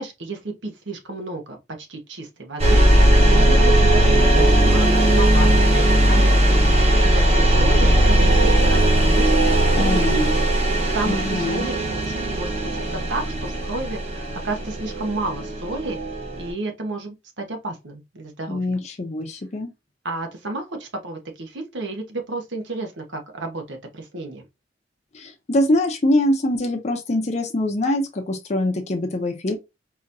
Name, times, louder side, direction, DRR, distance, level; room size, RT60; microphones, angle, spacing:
voice 1, 0.0-6.6 7.0-9.3 9.7-10.2 10.6-16.0 16.4-18.8 20.0-24.5, right 2 dB, 75° right, 1.0 m, -31 dB
sound 1, 2.6-16.5, right 1 dB, 35° right, 1.1 m, -18 dB
voice 2, 9.7-10.4 11.1-11.7 18.5-19.7 25.1-29.6, left 1 dB, 35° left, 0.6 m, -23 dB
4.0 x 2.8 x 2.6 m
head